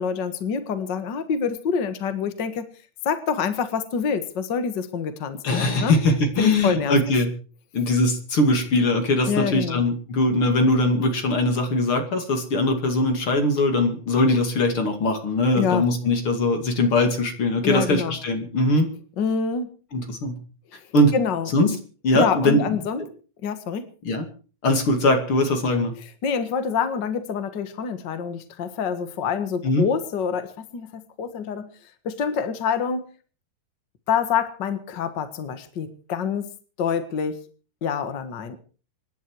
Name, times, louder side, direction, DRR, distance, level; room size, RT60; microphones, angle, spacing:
voice 1, 0.0-2.6 3.0-5.9 6.4-7.0 9.3-9.8 15.5-15.8 17.6-18.2 19.2-19.7 21.1-21.5 22.1-23.0 23.4-23.9 26.2-31.7 32.0-33.0 34.1-36.5 36.8-37.4 37.8-38.6, left 6 dB, 65° left, 10 dB, 1.1 m, -26 dB
voice 2, 5.4-7.3 7.7-18.9 19.9-20.4 20.9-21.1 21.5-21.8 22.0-22.8 24.0-24.3 24.6-25.9 29.6-29.9, left 2 dB, 40° left, 6 dB, 2.8 m, -21 dB
26.0 x 11.0 x 4.7 m, 0.39 s
omnidirectional pair, 4.4 m